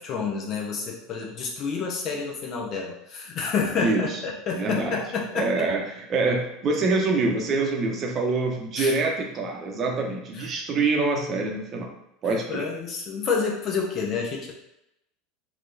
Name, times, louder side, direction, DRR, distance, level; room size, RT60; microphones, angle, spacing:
voice 1, 0.0-5.7 8.8-8.9 10.4-10.5 12.3-14.5, left 5 dB, 45° left, 0 dB, 0.9 m, -29 dB
voice 2, 3.8-4.2 4.6-5.0 5.3-11.9 12.2-12.7, right 3 dB, 35° right, 1 dB, 0.8 m, -25 dB
4.6 x 2.9 x 2.6 m, 0.85 s
figure-of-eight pair, 75°, 0 cm